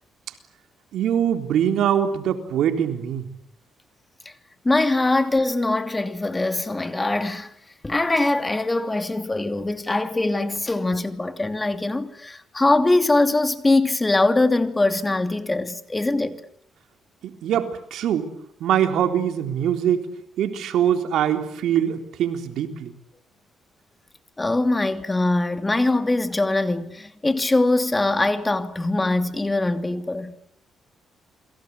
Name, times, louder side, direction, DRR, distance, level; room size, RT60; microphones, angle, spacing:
voice 1, 0.9-3.3 17.2-18.3 18.6-20.1 20.4-22.9, right 9 dB, 80° right, 3.8 m, -23 dB
voice 2, 4.6-7.5 7.8-16.4 24.4-30.3, left 2 dB, 15° left, 2.8 m, -22 dB
29.0 x 23.0 x 8.5 m
cardioid pair, 90°, 0 cm